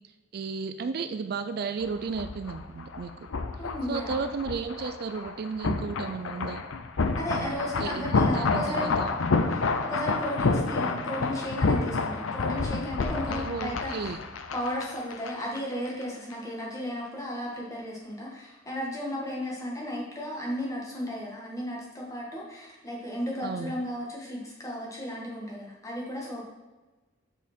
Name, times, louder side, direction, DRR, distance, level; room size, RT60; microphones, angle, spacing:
voice 1, 0.3-3.3 3.9-6.6 7.3-9.1 10.9-11.0 13.3-14.2 23.4-23.7, right 5 dB, 50° right, 9 dB, 0.3 m, -34 dB
sound 1, 1.8-15.6 15.9-16.0, left 3 dB, 80° left, 0.6 m, -29 dB
voice 2, 3.6-4.1 7.1-8.9 9.5-14.1 14.5-26.4, equal, 15° left, -3 dB, 1.6 m, -34 dB
7.2 x 5.7 x 4.3 m, 1.2 s
head